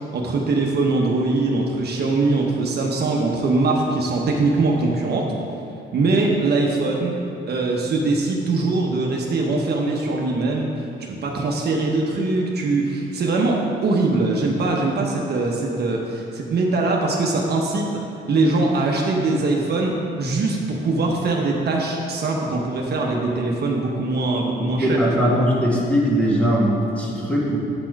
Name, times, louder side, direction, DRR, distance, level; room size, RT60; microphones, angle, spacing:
voice 1, 0.1-5.3 5.9-7.1 7.5-17.9 18.3-25.3, right 3 dB, 55° right, -1 dB, 0.9 m, -22 dB
voice 2, 24.8-27.6, equal, 5° left, -5 dB, 1.7 m, -20 dB
8.8 x 4.2 x 4.6 m, 2.6 s
cardioid pair, 90°, 20 cm